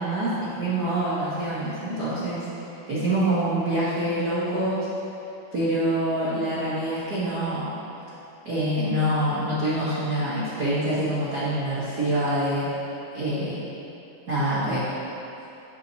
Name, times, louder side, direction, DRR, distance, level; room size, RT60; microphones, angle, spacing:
voice 1, 0.0-2.5 2.9-4.8 5.5-7.7 8.4-12.7 13.1-13.6 14.3-14.8, right 1 dB, 65° right, -11 dB, 0.9 m, -25 dB
11.0 x 6.2 x 2.8 m, 2.9 s
omnidirectional pair, 4.0 m